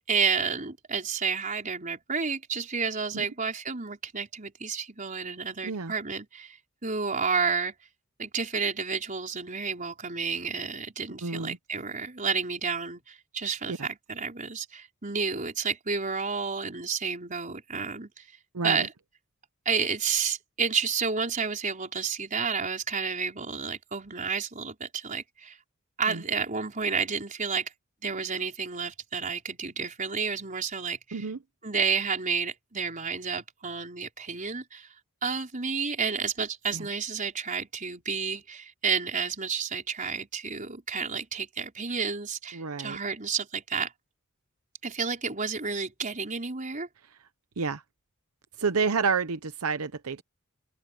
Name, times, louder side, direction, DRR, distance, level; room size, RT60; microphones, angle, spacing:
voice 1, 0.1-6.6 6.8-7.7 8.2-18.2 18.6-18.9 19.6-25.6 26.0-27.7 28.0-31.3 31.6-34.9 35.2-43.9 44.8-46.9, right 5 dB, 35° right, 4.7 m, -30 dB
voice 2, 11.2-11.6 13.7-13.9 18.5-18.9 26.1-26.2 31.1-31.4 36.7-36.9 42.5-43.0 47.6-47.8 48.6-50.2, right 5 dB, 80° right, 0.8 m, -29 dB
open air
head